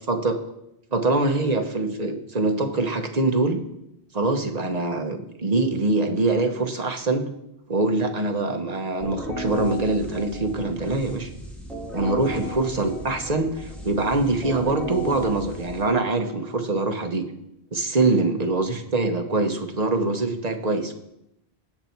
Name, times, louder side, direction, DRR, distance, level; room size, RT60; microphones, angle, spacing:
voice 1, 0.9-3.6 4.1-7.2 7.7-11.3 11.9-17.3 17.7-20.9, right 2 dB, 40° right, 5 dB, 1.2 m, -24 dB
sound 1, 9.0-16.6, equal, ahead, 2.2 m, -36 dB
17.5 x 6.8 x 4.5 m, 0.83 s
omnidirectional pair, 1.1 m